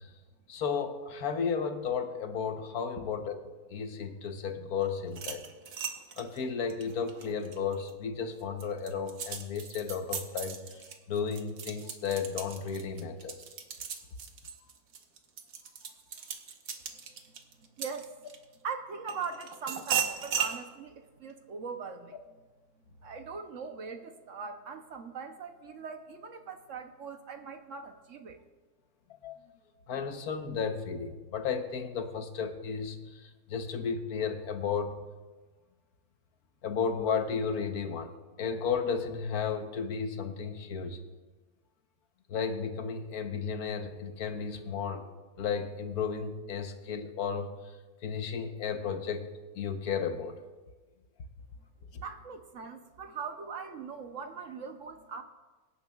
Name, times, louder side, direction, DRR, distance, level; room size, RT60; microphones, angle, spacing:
voice 1, 0.5-3.4 3.7-5.4 6.2-10.6 11.1-13.3 29.2-29.4 29.9-33.0 33.5-34.9 36.6-38.1 38.4-41.0 42.3-45.0 45.4-47.5 48.0-49.3 49.6-50.4, left 6 dB, 75° left, 7 dB, 1.4 m, -33 dB
sound 1, 5.1-7.9 8.4-18.5 19.1-20.6, right 7 dB, 80° right, 1.5 m, -37 dB
voice 2, 17.6-18.3 18.6-22.2 23.0-28.4 51.9-55.2, right 5 dB, 60° right, 7 dB, 1.0 m, -41 dB
24.0 x 10.0 x 2.3 m, 1.3 s
omnidirectional pair, 1.6 m